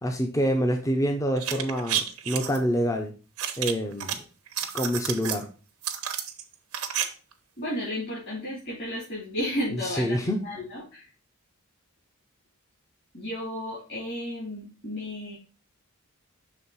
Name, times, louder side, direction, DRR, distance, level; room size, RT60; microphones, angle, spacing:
voice 1, 0.0-3.1 3.6-4.2 4.7-5.5 10.0-10.4, equal, 15° left, 4 dB, 0.6 m, -26 dB
sound 1, 1.4-2.6 3.4-4.1 4.5-5.4 5.8-7.0 7.3-7.4, right 10 dB, 90° right, 0.9 m, -30 dB
voice 2, 7.6-11.1 13.1-15.4, left 1 dB, 45° left, -7 dB, 2.8 m, -33 dB
6.3 x 3.4 x 5.5 m, 0.35 s
head